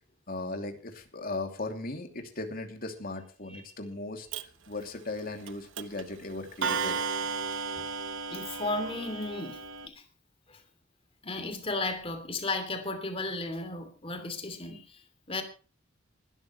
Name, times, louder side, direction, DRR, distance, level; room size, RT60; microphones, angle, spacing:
voice 1, 0.3-7.0, left 2 dB, 50° left, 2.8 m, -37 dB
Clock, 4.3-4.4 5.5-5.6 5.8-6.0 6.6-9.9, right 5 dB, 75° right, 1.0 m, -34 dB
voice 2, 8.3-10.0 10.5-10.6 11.2-15.4, left 2 dB, 30° left, 2.9 m, -35 dB
20.5 x 12.5 x 3.2 m
head